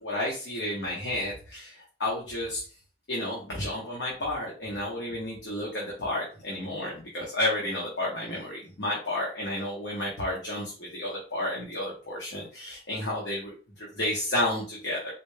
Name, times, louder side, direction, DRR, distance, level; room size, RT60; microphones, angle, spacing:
voice 1, 0.0-2.6 3.1-15.1, left 1 dB, 80° left, -4 dB, 1.0 m, -31 dB
4.1 x 2.2 x 3.2 m, 0.39 s
head